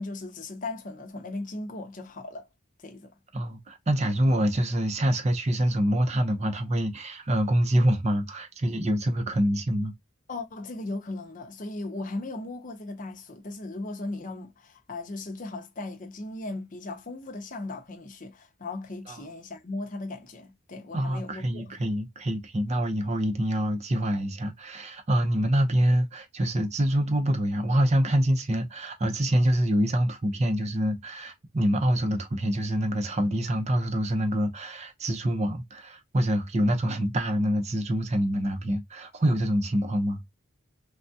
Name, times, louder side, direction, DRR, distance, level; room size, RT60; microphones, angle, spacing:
voice 1, 0.0-2.5 2.8-3.1 10.3-21.8, left 2 dB, 40° left, 0.6 m, -37 dB
voice 2, 3.3-9.9 20.9-40.2, equal, 30° right, 0.6 m, -26 dB
3.3 x 2.3 x 2.6 m
head